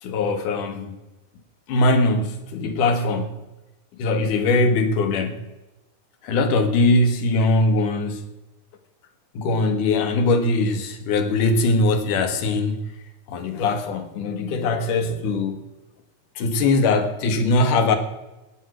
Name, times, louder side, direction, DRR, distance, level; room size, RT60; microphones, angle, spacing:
voice 1, 0.0-1.0 1.7-3.4 3.9-5.5 6.2-8.2 9.3-12.8 13.3-15.6 16.4-18.0, left 2 dB, 70° left, 8 dB, 3.0 m, -21 dB
18.5 x 9.5 x 6.3 m, 1.0 s
omnidirectional pair, 3.8 m